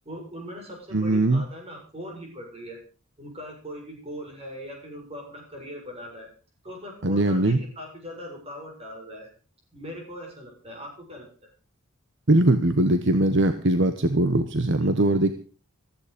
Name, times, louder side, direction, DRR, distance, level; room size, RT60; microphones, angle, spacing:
voice 1, 0.1-2.8 3.2-6.3 6.6-9.3 9.7-11.5 14.8-14.9, equal, 30° right, 1 dB, 7.0 m, -40 dB
voice 2, 0.9-1.4 7.0-7.6 12.3-15.3, right 1 dB, 60° right, 10 dB, 1.1 m, -21 dB
15.5 x 14.0 x 5.2 m, 0.38 s
head